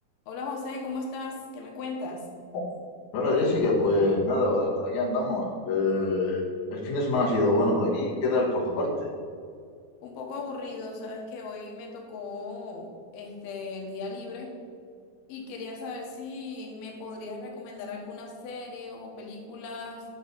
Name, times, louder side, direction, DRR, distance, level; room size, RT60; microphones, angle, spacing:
voice 1, 0.3-2.2 10.0-14.5 15.3-20.1, left 3 dB, 85° left, 1 dB, 3.0 m, -37 dB
voice 2, 3.1-6.4 6.7-9.1, left 2 dB, 60° left, -3 dB, 2.6 m, -25 dB
9.8 x 6.5 x 4.1 m, 2.2 s
omnidirectional pair, 4.3 m